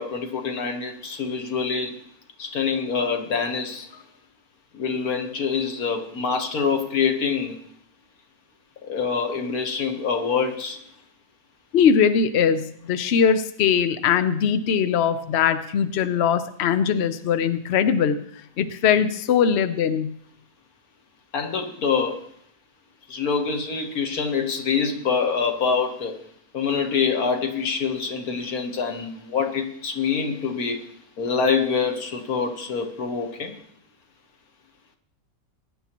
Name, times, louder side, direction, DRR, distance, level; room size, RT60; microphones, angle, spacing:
voice 1, 0.0-2.0 2.4-4.0 4.7-7.6 8.8-10.8 21.3-22.2 23.1-26.2 26.5-30.9 31.2-33.6, left 5 dB, 55° left, 5 dB, 1.6 m, -25 dB
voice 2, 11.7-20.1, left 7 dB, 75° left, 10 dB, 0.6 m, -21 dB
21.0 x 10.0 x 3.0 m, 0.67 s
omnidirectional pair, 2.1 m